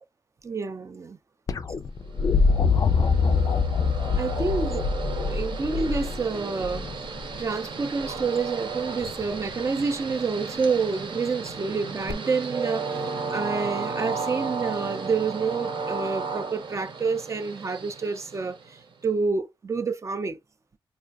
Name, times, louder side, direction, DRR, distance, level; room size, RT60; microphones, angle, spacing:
voice 1, 0.4-1.2 4.1-4.8 5.1-6.9 7.4-20.4, right 4 dB, 30° right, 0.4 m, -28 dB
sound 1, 1.5-7.4 9.0-9.5 12.1-12.2, left 5 dB, 40° left, 0.3 m, -24 dB
Train, 2.2-18.9, right 4 dB, 65° right, 0.8 m, -34 dB
4.8 x 2.5 x 2.3 m
wide cardioid pair, 140°, 9 cm